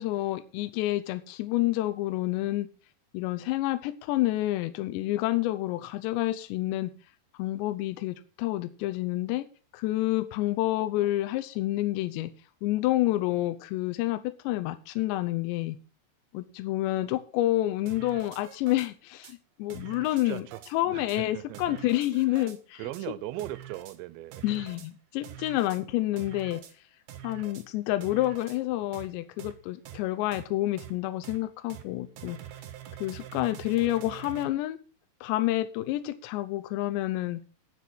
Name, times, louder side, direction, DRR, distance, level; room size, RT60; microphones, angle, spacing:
voice 1, 0.0-2.7 3.1-6.9 7.4-9.4 9.7-12.3 12.6-15.8 16.3-20.4 20.7-22.8 24.4-26.6 27.2-32.4 33.0-34.8 35.2-37.4, left 16 dB, 85° left, 2.9 m, -29 dB
sound 1, 17.9-18.9 19.2-19.3 19.7-20.7 21.1-21.2 21.5-22.6 22.9-23.0 23.4-24.0 24.3-24.9 25.2-25.8 26.2-26.7 27.1-27.6 28.0-28.6 28.9-29.1 29.4-29.5 29.9-30.0 30.3-30.4 30.8-30.9 31.2-31.4 31.7-31.8 32.2-34.5, right 11 dB, 65° right, 2.8 m, -45 dB
voice 2, 20.3-21.8 22.3-22.5 22.8-24.4 25.4-25.5, right 15 dB, 85° right, 3.0 m, -39 dB
9.2 x 7.6 x 6.1 m
omnidirectional pair, 5.1 m